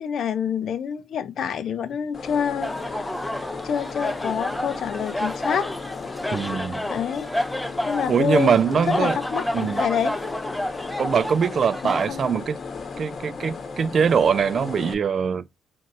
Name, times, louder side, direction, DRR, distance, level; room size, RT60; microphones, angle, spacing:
voice 1, 0.0-3.1 3.6-5.7 6.9-7.3 7.8-10.1 11.8-12.3, left 8 dB, 65° left, 0.6 m, -27 dB
sound 1, 2.1-14.9, left 4 dB, 45° left, 0.9 m, -35 dB
sound 2, 2.6-12.1, left 1 dB, 5° left, 0.5 m, -30 dB
voice 2, 6.3-6.8 8.1-9.2 9.5-9.8 11.0-12.6 13.0-15.4, right 6 dB, 50° right, 0.4 m, -22 dB
3.7 x 2.7 x 4.1 m
cardioid pair, 90°, 0 cm